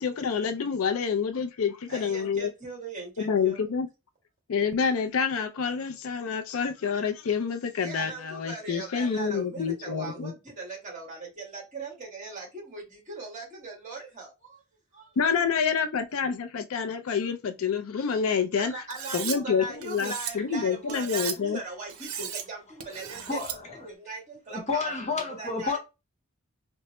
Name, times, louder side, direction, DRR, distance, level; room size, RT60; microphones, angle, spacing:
voice 1, 0.0-2.5 3.2-3.9 4.5-10.3 15.2-18.8 19.1-21.6, left 6 dB, 70° left, 0.4 m, -28 dB
voice 2, 1.9-3.6 7.8-14.6 14.9-15.2 18.6-23.4 23.7-24.9 25.4-25.8, right 3 dB, 35° right, 1.8 m, -40 dB
Cutlery silverware, 18.9-19.4 19.8-20.3 20.9-21.4 21.9-22.4 22.8-23.6, right 8 dB, 80° right, 0.6 m, -35 dB
voice 3, 23.3-23.9 24.5-25.8, left 4 dB, 35° left, 0.9 m, -30 dB
4.2 x 2.1 x 2.9 m
head